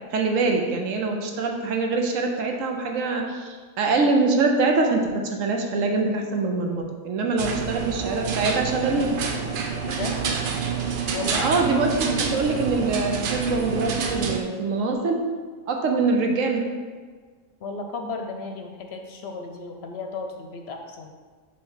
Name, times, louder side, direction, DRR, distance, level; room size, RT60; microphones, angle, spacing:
voice 1, 0.1-9.2 11.4-15.2 15.7-16.6, right 3 dB, 80° right, 2 dB, 1.2 m, -24 dB
sound 1, 7.4-14.4, right 6 dB, 55° right, 0.6 m, -28 dB
voice 2, 9.8-10.2 11.1-11.5 17.6-21.1, left 3 dB, 60° left, 3 dB, 0.8 m, -34 dB
5.7 x 3.2 x 5.6 m, 1.5 s
omnidirectional pair, 1.3 m